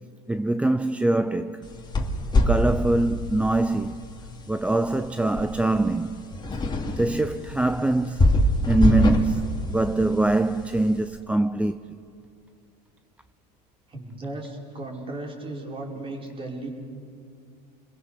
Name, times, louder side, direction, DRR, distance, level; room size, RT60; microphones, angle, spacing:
voice 1, 0.3-1.7 2.5-4.0 4.5-6.2 6.9-8.3 8.7-11.7, right 2 dB, 5° right, 0.5 m, -23 dB
sound 1, 1.6-11.0, left 1 dB, 20° left, 2.7 m, -26 dB
voice 2, 13.9-16.7, right 2 dB, 25° right, 5.1 m, -35 dB
28.5 x 21.5 x 6.7 m
supercardioid pair, 105°, 21 cm